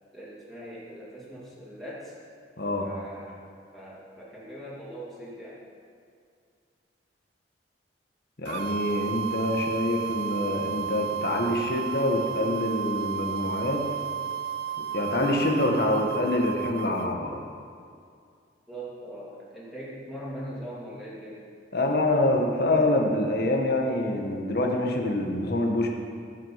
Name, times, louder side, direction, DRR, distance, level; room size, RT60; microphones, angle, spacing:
voice 1, 0.1-2.1 2.8-3.4 3.7-5.6 18.7-21.4, equal, ahead, -8 dB, 2.7 m, -41 dB
voice 2, 2.6-2.9 8.4-13.8 14.9-17.4 21.7-25.9, left 1 dB, 55° left, 1 dB, 1.5 m, -26 dB
sound 1, 8.4-17.1, right 8 dB, 60° right, 0.4 m, -33 dB
15.5 x 6.3 x 5.8 m, 2.3 s
head